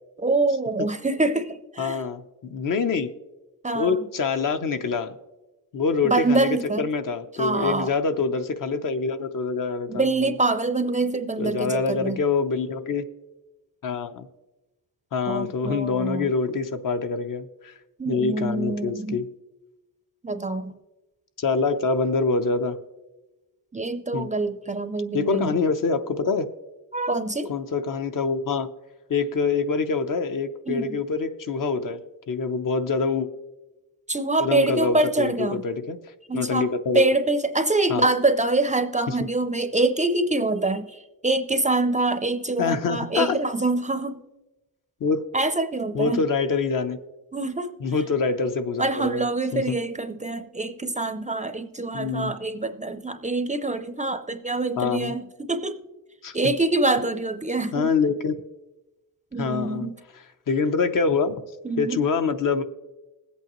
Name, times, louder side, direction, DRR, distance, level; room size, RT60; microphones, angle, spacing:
voice 1, 0.2-2.0 3.6-4.1 6.0-6.9 7.4-7.9 9.9-12.2 15.3-16.3 18.0-19.2 20.2-20.7 23.7-25.6 26.9-27.5 30.7-31.0 34.1-35.6 36.3-36.7 36.9-44.2 45.3-46.2 47.3-47.7 48.8-55.8 56.3-57.9 59.3-60.0 61.6-62.0, right 2 dB, 20° right, 9 dB, 0.4 m, -25 dB
voice 2, 1.8-3.1 3.7-5.1 5.7-10.3 11.4-13.0 13.8-14.3 15.1-17.7 18.0-19.2 21.4-22.8 24.1-24.3 25.1-26.5 27.5-28.7 29.1-32.0 32.3-33.3 34.4-36.0 36.3-37.0 37.9-38.0 39.1-39.2 42.6-43.4 45.0-45.2 45.9-47.0 47.8-49.2 49.5-49.8 51.9-52.3 54.8-55.1 56.2-56.4 57.7-58.3 59.4-59.9 60.5-61.4 61.8-62.6, left 4 dB, 60° left, 8 dB, 0.8 m, -25 dB
21.0 x 8.4 x 3.0 m, 1.1 s
wide cardioid pair, 145°, 37 cm